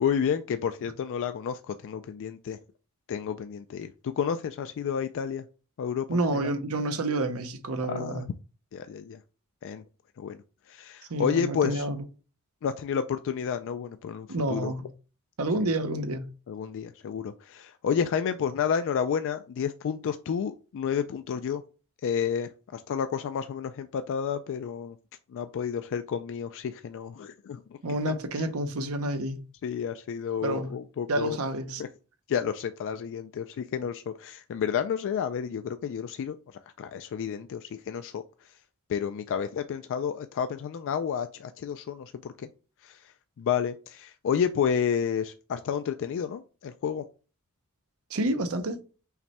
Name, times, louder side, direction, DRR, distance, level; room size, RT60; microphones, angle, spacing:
voice 1, 0.0-2.6 3.1-5.4 5.8-6.5 7.9-8.2 8.7-9.2 9.6-9.8 10.2-10.4 10.7-11.9 12.6-14.7 16.5-21.6 22.0-25.0 25.3-27.8 28.1-28.2 29.6-31.4 31.8-31.9 32.3-36.4 36.8-38.2 38.9-42.5 42.8-47.0, left 7 dB, 60° left, 0.3 m, -30 dB
voice 2, 6.1-8.3 11.1-12.0 14.3-14.8 15.4-16.3 27.8-29.5 30.4-30.8 31.1-31.8 48.1-48.8, right 2 dB, 70° right, 0.7 m, -29 dB
5.8 x 2.2 x 4.1 m
head